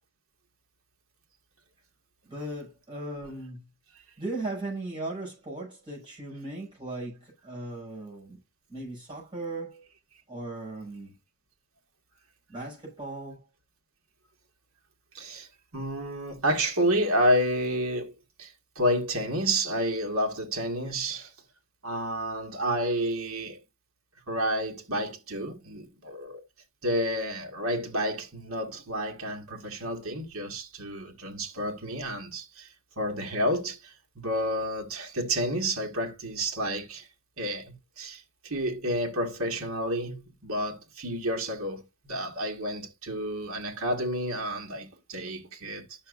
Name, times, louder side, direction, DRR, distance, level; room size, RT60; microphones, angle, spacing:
voice 1, 2.3-3.7 4.2-8.4 8.7-9.9 10.3-11.1 12.5-13.5, right 2 dB, 20° right, 5.9 m, -37 dB
voice 2, 15.1-15.5 15.7-18.1 18.4-21.3 21.8-23.6 24.3-26.4 26.8-32.7 33.0-37.1 37.4-46.1, equal, 75° right, 1.8 m, -30 dB
11.5 x 6.2 x 2.5 m
head